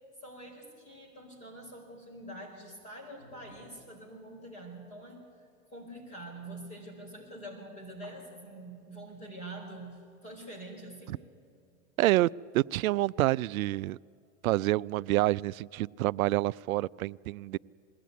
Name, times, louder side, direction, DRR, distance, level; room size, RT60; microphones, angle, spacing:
voice 1, 0.2-11.2, right 1 dB, 15° left, -1 dB, 4.6 m, -45 dB
voice 2, 12.0-14.0 14.4-17.6, right 17 dB, 80° right, 20 dB, 0.5 m, -28 dB
21.5 x 17.0 x 9.4 m, 2.3 s
supercardioid pair, 155°, 41 cm